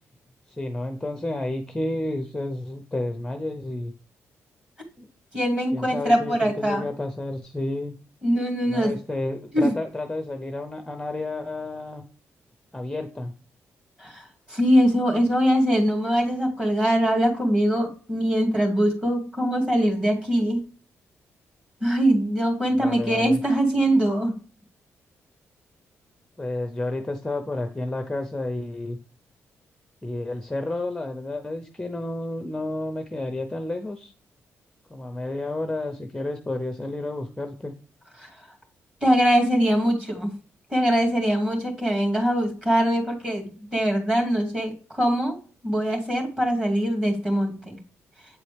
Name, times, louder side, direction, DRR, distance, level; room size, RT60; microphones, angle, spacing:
voice 1, 0.5-3.9 5.0-5.1 5.7-7.9 8.6-12.0 12.7-13.3 22.8-23.4 26.4-29.0 30.0-34.1 34.9-37.7, left 2 dB, 10° left, 5 dB, 0.6 m, -31 dB
voice 2, 5.3-6.9 8.2-9.0 9.5-9.7 14.0-14.2 14.5-20.6 21.8-24.3 38.2-38.3 39.0-40.3 40.7-45.4 45.6-47.8, equal, 20° right, 1 dB, 2.2 m, -22 dB
8.3 x 4.1 x 3.3 m, 0.38 s
cardioid pair, 130°, 5 cm